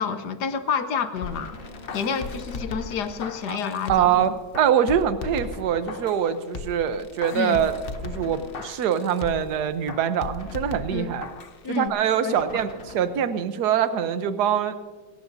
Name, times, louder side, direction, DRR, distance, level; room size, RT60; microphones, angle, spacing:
voice 1, 0.0-1.6 1.9-4.4 7.3-7.6 10.9-11.1 11.6-12.6, left 6 dB, 60° left, 10 dB, 1.3 m, -29 dB
Gunshot gunfire, 1.1-3.6 5.2-6.3 7.6-9.1 10.4-11.2 12.4-13.5, left 2 dB, 35° left, 1.3 m, -45 dB
sound 1, 1.2-4.2 4.5-6.2 6.5-9.5 9.9-11.6 11.9-12.0, left 4 dB, 80° left, 0.5 m, -37 dB
voice 2, 3.9-7.7 8.0-11.3 11.8-12.7 12.9-14.8, right 8 dB, 60° right, 11 dB, 1.3 m, -23 dB
28.0 x 14.0 x 2.7 m, 1.5 s
omnidirectional pair, 2.2 m